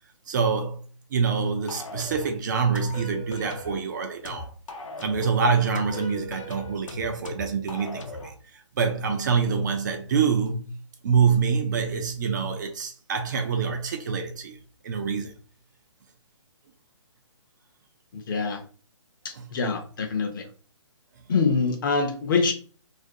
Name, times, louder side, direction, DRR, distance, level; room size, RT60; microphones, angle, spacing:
voice 1, 0.3-0.8 1.1-4.5 5.0-10.8 11.0-14.6 14.8-15.3 19.3-19.6, right 5 dB, 35° right, 0.3 m, -26 dB
sound 1, 1.7-2.3 2.7-3.8 4.2-5.3 5.7-8.3, left 1 dB, 85° left, 0.6 m, -38 dB
voice 2, 18.3-18.6 19.2-20.5 21.3-22.5, left 4 dB, 40° left, 0.5 m, -25 dB
2.4 x 2.1 x 2.6 m
hypercardioid pair, 145°, 16 cm